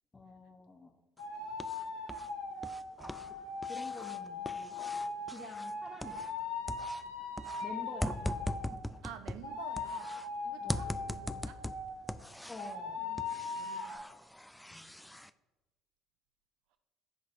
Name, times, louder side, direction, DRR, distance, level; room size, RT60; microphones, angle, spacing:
voice 1, 0.1-1.0 3.3-3.4 3.7-4.8 5.3-6.3 7.6-8.5 10.6-11.0 12.5-13.0 14.7-14.9, left 2 dB, 20° left, 0.8 m, -48 dB
sound 1, 1.2-8.8 9.4-12.1 12.6-14.0, left 4 dB, 85° left, 1.1 m, -40 dB
sound 2, 1.2-2.3 2.6-6.4 6.7-10.3 10.7-12.8 13.2-15.3, left 1 dB, 5° left, 0.3 m, -41 dB
voice 2, 9.0-11.7 13.0-14.1, right 9 dB, 65° right, 0.6 m, -51 dB
11.0 x 4.0 x 2.5 m
figure-of-eight pair, 55°, 0 cm